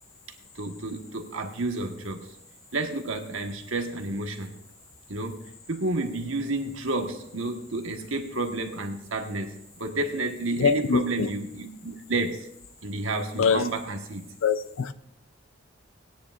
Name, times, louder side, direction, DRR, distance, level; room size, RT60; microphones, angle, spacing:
voice 1, 0.5-2.3 2.7-4.5 5.1-5.4 5.7-12.5 12.8-14.2, right 2 dB, 75° right, 1.4 m, -30 dB
voice 2, 10.6-11.3 13.4-13.7 14.4-14.9, left 5 dB, 75° left, 0.5 m, -23 dB
19.0 x 10.0 x 2.5 m
head